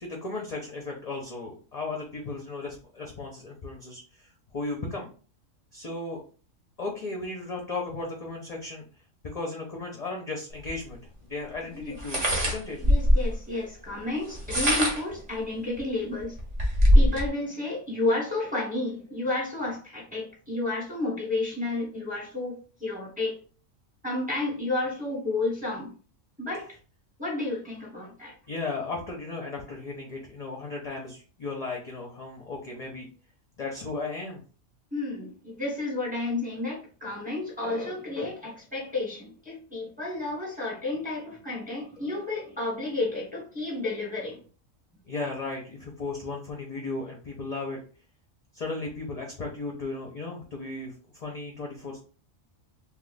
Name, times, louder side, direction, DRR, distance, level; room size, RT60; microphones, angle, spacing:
voice 1, 0.0-5.1 5.7-6.2 6.8-8.9 9.3-12.9 28.5-33.1 33.6-34.4 45.1-47.8 48.5-52.0, left 3 dB, 40° left, 0.6 m, -35 dB
sound 1, 10.6-10.7 12.0-13.3 14.3-15.2 15.8-15.9 16.2-17.3, equal, 35° right, 0.9 m, -21 dB
voice 2, 12.8-16.4 16.9-23.4 24.0-25.9 26.4-26.7 27.2-28.4 34.9-44.4, left 2 dB, 5° right, 1.0 m, -31 dB
2.8 x 2.3 x 4.0 m
omnidirectional pair, 1.3 m